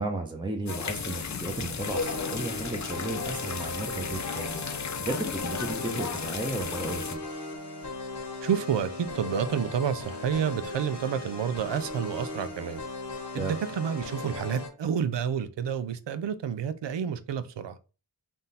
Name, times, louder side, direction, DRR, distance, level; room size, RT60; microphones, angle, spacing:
voice 1, 0.0-4.6 5.0-7.2 13.3-13.6, right 2 dB, 10° right, 0.8 m, -34 dB
sound 1, 0.7-7.2, left 6 dB, 45° left, 0.5 m, -34 dB
sound 2, 1.8-14.7, left 2 dB, 75° left, 1.2 m, -38 dB
voice 2, 8.4-12.8 13.3-17.8, right 8 dB, 85° right, 0.5 m, -29 dB
3.7 x 2.5 x 4.1 m
cardioid pair, 40°, 42 cm